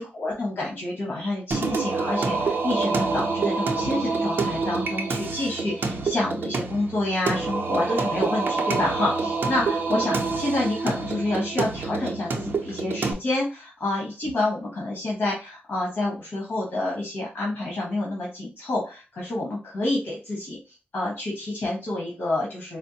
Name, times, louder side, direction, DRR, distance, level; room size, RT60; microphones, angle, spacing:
voice 1, 0.0-22.8, left 2 dB, 65° left, -4 dB, 1.3 m, -28 dB
Singing, 1.5-13.1, right 4 dB, 65° right, 0.7 m, -27 dB
4.4 x 2.1 x 2.8 m, 0.30 s
wide cardioid pair, 130°, 4 cm